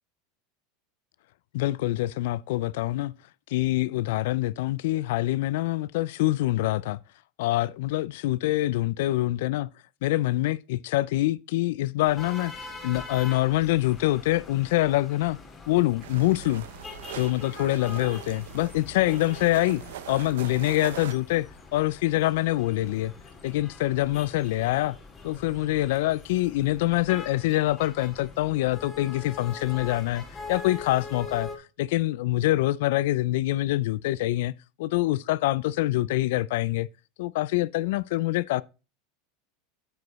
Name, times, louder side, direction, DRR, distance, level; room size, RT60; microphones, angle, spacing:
voice 1, 1.5-3.1 3.5-7.0 7.4-9.7 10.0-15.4 15.7-16.7 17.1-19.8 20.1-21.5 21.7-23.1 23.4-25.0 25.2-31.5 31.8-34.5 34.8-36.9 37.2-38.6, left 17 dB, 75° left, 0.3 m, -25 dB
sound 1, 12.0-31.6, left 4 dB, 20° left, 2.1 m, -43 dB
sound 2, 16.0-21.1, right 12 dB, 90° right, 0.6 m, -41 dB
9.2 x 5.0 x 4.1 m
supercardioid pair, 140°, 0 cm